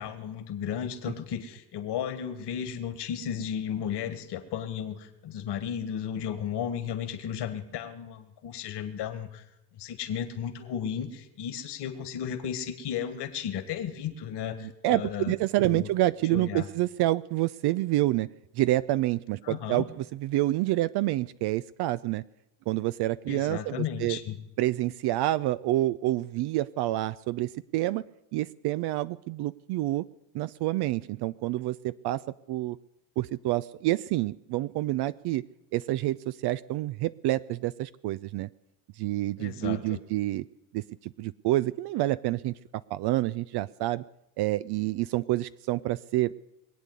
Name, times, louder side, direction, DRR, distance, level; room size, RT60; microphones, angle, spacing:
voice 1, 0.0-9.4 9.8-15.3 15.6-15.9 16.3-16.7 19.4-19.8 23.3-24.4 39.4-40.0, left 8 dB, 55° left, 9 dB, 2.0 m, -34 dB
voice 2, 14.6-18.3 18.6-22.2 22.7-24.2 24.6-28.0 28.3-30.0 30.3-32.2 32.5-32.8 33.2-35.4 35.7-38.5 39.0-40.4 40.7-42.5 42.9-44.0 44.4-46.3, right 16 dB, 55° right, 15 dB, 0.5 m, -28 dB
21.5 x 8.3 x 8.2 m, 0.91 s
hypercardioid pair, 75°, 50 cm